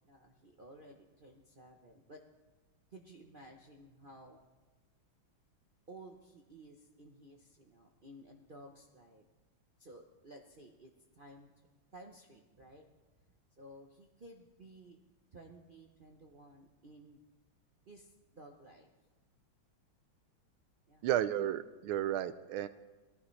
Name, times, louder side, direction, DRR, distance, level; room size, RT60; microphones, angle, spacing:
voice 1, 0.0-2.2 2.9-4.4 5.9-9.3 9.8-11.7 11.9-12.8 13.6-15.0 15.3-17.2 17.9-18.9 20.9-21.1, right 1 dB, 65° right, 1 dB, 0.5 m, -55 dB
voice 2, 21.0-22.7, right 11 dB, 90° right, 14 dB, 1.5 m, -33 dB
19.0 x 14.5 x 3.2 m, 1.2 s
omnidirectional pair, 2.2 m